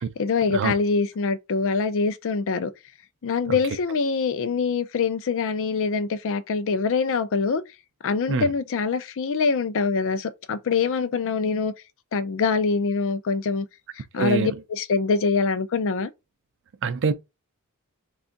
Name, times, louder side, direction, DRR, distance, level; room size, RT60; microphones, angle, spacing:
voice 1, 0.2-2.7 3.2-7.6 8.0-11.7 12.1-13.7 14.0-16.1, left 4 dB, 60° left, 0.5 m, -24 dB
voice 2, 14.2-14.5 16.8-17.1, right 5 dB, 55° right, 0.4 m, -24 dB
3.4 x 2.4 x 3.8 m
head